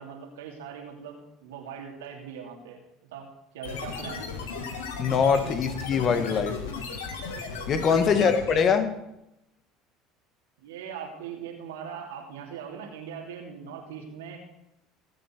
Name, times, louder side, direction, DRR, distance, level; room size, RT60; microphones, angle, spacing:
voice 1, 0.0-2.8 3.1-3.3 3.5-4.3 8.1-8.4 10.6-14.4, right 7 dB, 80° right, 1 dB, 2.8 m, -40 dB
sound 1, 3.6-8.8, left 5 dB, 85° left, 1.8 m, -36 dB
voice 2, 5.0-6.6 7.7-8.9, left 6 dB, 45° left, 9 dB, 1.7 m, -23 dB
18.5 x 8.1 x 4.5 m, 0.85 s
hypercardioid pair, 75°, 0 cm